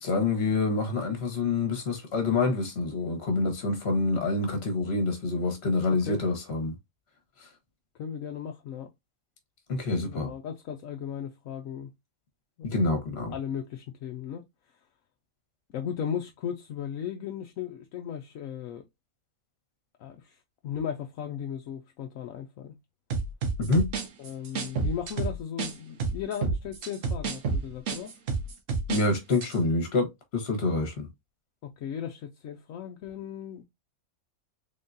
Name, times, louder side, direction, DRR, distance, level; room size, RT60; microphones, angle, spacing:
voice 1, 0.0-6.8 7.4-7.5 9.7-10.3 12.6-13.3 23.6-23.9 28.9-31.1, left 3 dB, 50° left, 1.4 m, -27 dB
voice 2, 8.0-8.9 10.0-11.9 12.6-12.8 13.3-14.5 15.7-18.8 20.0-20.4 20.6-22.7 24.2-28.1 31.6-33.6, left 8 dB, 70° left, 1.0 m, -36 dB
sound 1, 23.1-25.7 26.0-29.0 29.3-29.5, right 4 dB, 60° right, 1.2 m, -29 dB
3.7 x 3.7 x 2.6 m
omnidirectional pair, 1.5 m